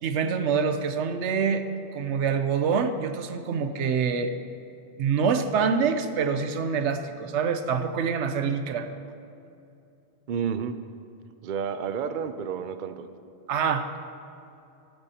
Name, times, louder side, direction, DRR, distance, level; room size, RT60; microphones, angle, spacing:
voice 1, 0.0-1.7 1.9-4.3 5.0-8.9 13.5-13.9, right 6 dB, 90° right, 9 dB, 1.0 m, -25 dB
voice 2, 10.3-10.8 11.4-13.1, right 7 dB, 55° right, 10 dB, 0.6 m, -30 dB
14.0 x 13.5 x 2.9 m, 2.7 s
omnidirectional pair, 1.1 m